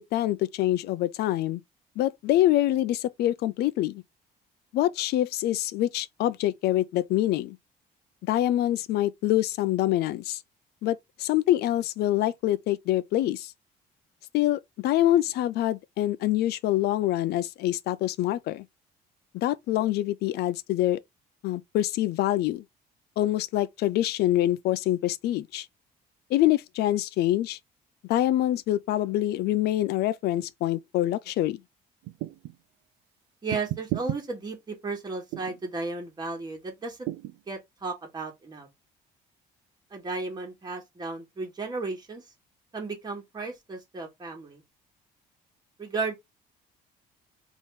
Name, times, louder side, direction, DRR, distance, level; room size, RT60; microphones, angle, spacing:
voice 1, 0.0-1.6 2.0-4.0 4.7-7.6 8.2-10.4 10.8-13.5 14.3-18.6 19.3-21.0 21.4-22.6 23.2-25.7 26.3-27.6 28.1-31.6, left 14 dB, 75° left, 0.5 m, -25 dB
sound 1, 32.0-32.6 33.5-34.2 35.3-35.6 37.1-37.4, right 15 dB, 85° right, 0.5 m, -32 dB
voice 2, 33.4-37.1 37.5-38.7 39.9-42.2 42.7-44.6 45.8-46.2, right 3 dB, 25° right, 2.1 m, -34 dB
4.1 x 3.0 x 3.6 m
cardioid pair, 110°, 17 cm